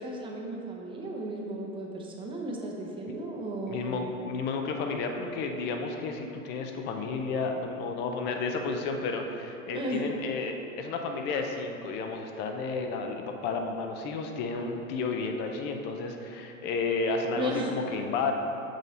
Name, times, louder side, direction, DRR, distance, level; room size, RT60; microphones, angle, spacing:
voice 1, 0.0-4.1 9.7-10.0 17.3-17.7, right 1 dB, 10° right, -1 dB, 0.7 m, -35 dB
voice 2, 3.7-18.3, left 4 dB, 25° left, 4 dB, 0.5 m, -32 dB
6.4 x 5.3 x 4.1 m, 2.9 s
hypercardioid pair, 120°, 42 cm